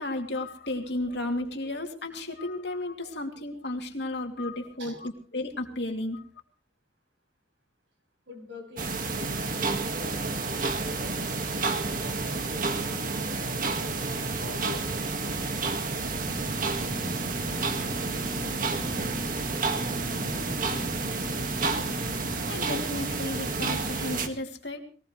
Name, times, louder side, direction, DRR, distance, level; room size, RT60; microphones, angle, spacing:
voice 1, 0.0-6.2 22.5-24.8, left 2 dB, 65° left, 3 dB, 2.7 m, -33 dB
voice 2, 8.3-11.2 11.6-15.4, equal, 75° right, 3 dB, 7.0 m, -44 dB
sound 1, 8.8-24.3, right 3 dB, 45° right, 1.7 m, -30 dB
sound 2, 16.1-22.5, equal, 25° left, 3.2 m, -40 dB
21.5 x 19.5 x 3.2 m, 0.39 s
head